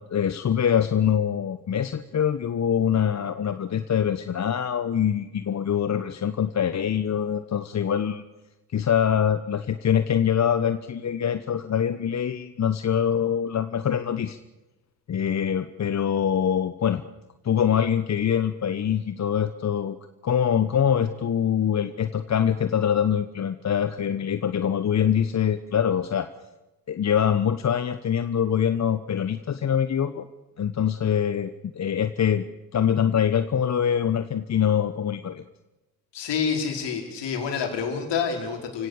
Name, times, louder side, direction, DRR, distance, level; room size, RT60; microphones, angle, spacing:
voice 1, 0.1-8.2 8.7-14.4 15.1-17.0 17.4-20.0 20.2-26.3 26.9-30.2 30.6-32.4 32.7-35.4, left 8 dB, 35° left, 11 dB, 1.1 m, -24 dB
voice 2, 36.1-38.9, left 6 dB, 55° left, 2 dB, 5.4 m, -28 dB
29.5 x 17.5 x 6.9 m, 1.0 s
hypercardioid pair, 55°, 50 cm